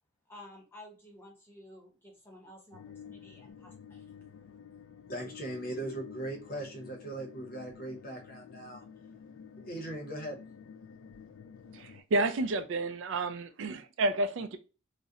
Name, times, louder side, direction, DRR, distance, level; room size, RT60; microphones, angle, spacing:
voice 1, 0.3-4.1, left 1 dB, 10° left, 0.7 m, -53 dB
sound 1, 2.7-12.0, left 7 dB, 80° left, 0.3 m, -50 dB
voice 2, 5.1-8.8 9.6-10.4, right 1 dB, 45° left, 0.7 m, -39 dB
voice 3, 11.7-14.6, right 2 dB, 70° right, 0.4 m, -30 dB
2.4 x 2.1 x 2.6 m
head